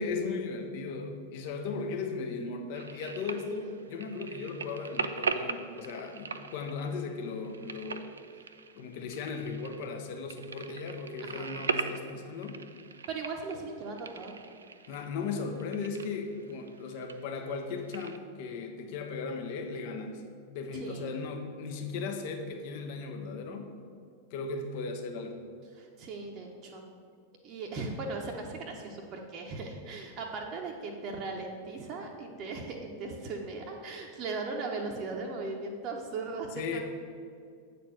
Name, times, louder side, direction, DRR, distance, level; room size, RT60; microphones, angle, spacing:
voice 1, 0.0-8.1 8.7-12.6 14.9-20.2 20.5-23.7 24.3-25.5 36.5-36.8, left 4 dB, 50° left, 5 dB, 0.9 m, -37 dB
sound 1, 2.7-18.2, right 5 dB, 70° right, 0.4 m, -40 dB
voice 2, 11.2-11.6 13.1-14.3 20.7-21.1 25.7-26.8 27.4-36.8, right 3 dB, 35° right, 1 dB, 0.8 m, -38 dB
8.2 x 4.4 x 6.4 m, 2.2 s
figure-of-eight pair, 90°, 0 cm